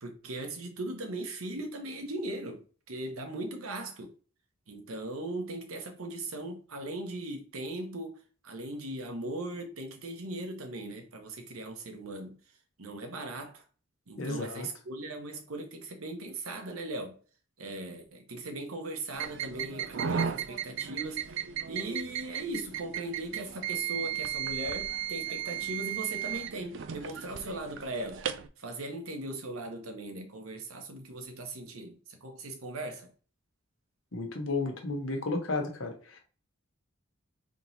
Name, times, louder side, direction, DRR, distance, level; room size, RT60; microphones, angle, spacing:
voice 1, 0.0-4.1 4.7-12.4 12.8-13.6 14.1-17.2 17.6-28.2 28.6-33.1, right 2 dB, 85° right, 1.0 m, -39 dB
voice 2, 14.2-14.7 34.1-36.2, left 3 dB, 70° left, 1.0 m, -33 dB
sound 1, 19.1-28.5, right 9 dB, 60° right, 0.4 m, -35 dB
3.6 x 3.0 x 4.0 m
head